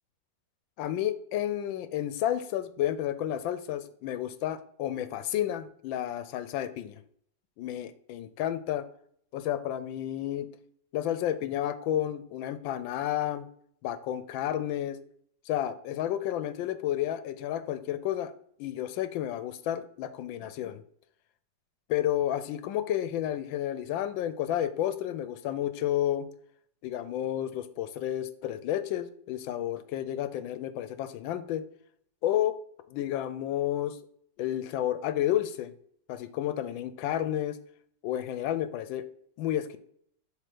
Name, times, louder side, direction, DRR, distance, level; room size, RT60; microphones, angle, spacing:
voice 1, 0.8-7.0 7.6-8.9 9.3-10.5 10.9-13.5 13.8-15.0 15.5-18.3 18.6-20.8 21.9-26.3 26.8-31.6 32.2-32.6 32.9-34.0 34.4-35.7 36.1-37.6 38.0-39.0 39.4-39.8, left 11 dB, 85° left, 13 dB, 1.3 m, -31 dB
7.5 x 3.4 x 5.0 m, 0.64 s
omnidirectional pair, 2.1 m